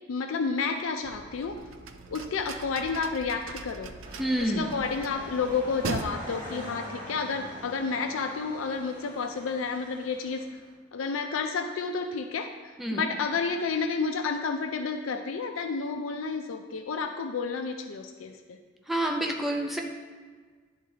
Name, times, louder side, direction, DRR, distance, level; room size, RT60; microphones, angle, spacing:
voice 1, 0.1-1.6 2.1-3.9 4.4-10.5 10.9-18.6, left 5 dB, 90° left, 5 dB, 0.4 m, -31 dB
sound 1, 1.0-6.1, right 4 dB, 80° right, 0.5 m, -40 dB
sound 2, 4.0-10.7, equal, 25° right, 1.6 m, -44 dB
voice 2, 4.2-4.7 12.8-13.1 18.9-19.8, right 1 dB, ahead, 0 dB, 0.5 m, -28 dB
11.0 x 4.0 x 2.8 m, 1.5 s
head